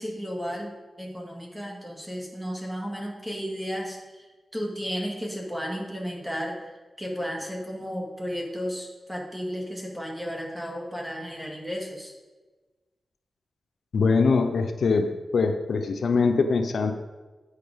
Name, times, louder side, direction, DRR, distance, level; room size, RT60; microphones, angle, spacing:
voice 1, 0.0-4.3 4.5-6.6 7.0-12.2, equal, 5° right, -1 dB, 2.1 m, -33 dB
voice 2, 13.9-16.9, left 4 dB, 80° left, 6 dB, 0.7 m, -23 dB
9.4 x 6.6 x 5.1 m, 1.3 s
wide cardioid pair, 90°, 0 cm